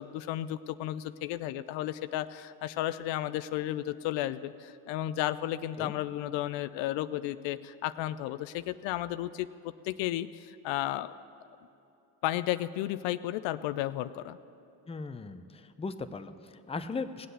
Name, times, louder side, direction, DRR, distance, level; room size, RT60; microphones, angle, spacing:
voice 1, 0.0-9.5 9.8-11.1 12.2-14.4, left 13 dB, 70° left, 14 dB, 0.6 m, -33 dB
voice 2, 14.9-17.3, left 4 dB, 15° left, 10 dB, 0.6 m, -38 dB
18.0 x 7.7 x 6.7 m, 2.8 s
hypercardioid pair, 70°, 47 cm